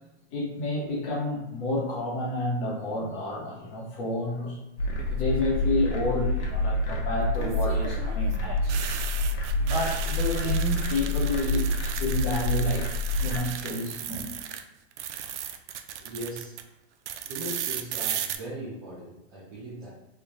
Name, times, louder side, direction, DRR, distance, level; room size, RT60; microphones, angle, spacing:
voice 1, 0.3-4.6 5.1-8.8 9.6-12.9 13.2-14.2, left 2 dB, 25° left, -4 dB, 0.8 m, -30 dB
sound 1, 4.8-13.4, left 1 dB, 90° left, 0.9 m, -27 dB
sound 2, 5.0-5.5 7.3-14.6 14.9-16.6 17.1-18.4, right 9 dB, 90° right, 0.5 m, -36 dB
voice 2, 16.0-16.6 17.2-19.9, right 1 dB, 20° right, -9 dB, 0.4 m, -39 dB
3.2 x 2.1 x 3.8 m, 0.84 s
supercardioid pair, 175°, 34 cm